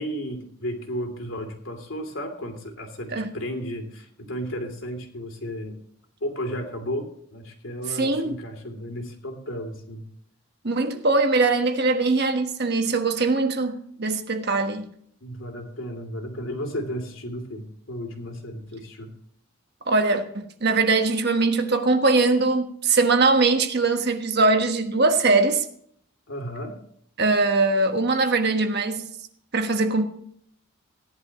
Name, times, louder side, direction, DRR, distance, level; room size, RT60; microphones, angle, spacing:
voice 1, 0.0-5.8 6.2-10.1 15.2-19.1 26.3-26.8, equal, 65° left, 2.8 m, -33 dB
voice 2, 8.0-8.4 10.6-14.9 19.9-25.6 27.2-29.1 29.5-30.0, right 3 dB, 50° right, 1.2 m, -21 dB
16.5 x 11.0 x 3.0 m
head